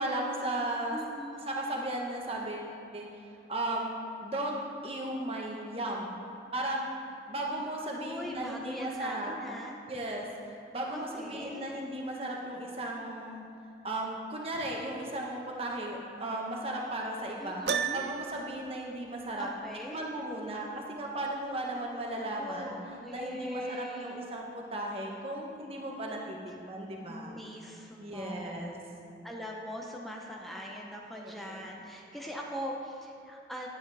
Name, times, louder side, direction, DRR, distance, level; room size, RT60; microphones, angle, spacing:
voice 1, 0.0-1.0 1.5-3.1 3.5-6.2 6.5-6.9 7.3-9.4 9.9-10.3 10.7-13.4 13.8-17.6 17.9-19.5 19.9-22.8 23.1-27.4 28.0-28.7 31.1-31.6, right 1 dB, 35° right, -1 dB, 1.3 m, -36 dB
voice 2, 0.9-1.5 7.9-9.8 10.9-11.7 17.4-18.1 19.4-20.0 22.4-24.2 27.1-28.7 29.2-33.7, equal, ahead, -2 dB, 0.7 m, -41 dB
Piano, 17.7-18.5, right 7 dB, 65° right, 0.4 m, -31 dB
11.0 x 10.0 x 3.5 m, 2.7 s
head